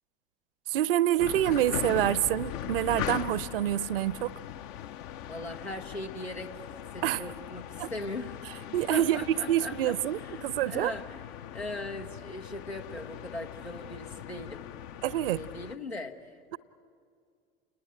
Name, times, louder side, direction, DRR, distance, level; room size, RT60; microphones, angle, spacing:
voice 1, 0.7-4.3 7.0-7.2 7.8-7.9 8.7-10.9 15.0-15.4, right 13 dB, 60° right, 0.7 m, -27 dB
sound 1, 1.2-15.8, left 11 dB, 50° left, 0.7 m, -40 dB
voice 2, 5.3-6.6 6.9-8.4 8.9-11.2 11.5-14.7 15.3-16.6, left 2 dB, 90° left, 1.3 m, -39 dB
29.5 x 20.0 x 9.0 m
figure-of-eight pair, 75°, 31 cm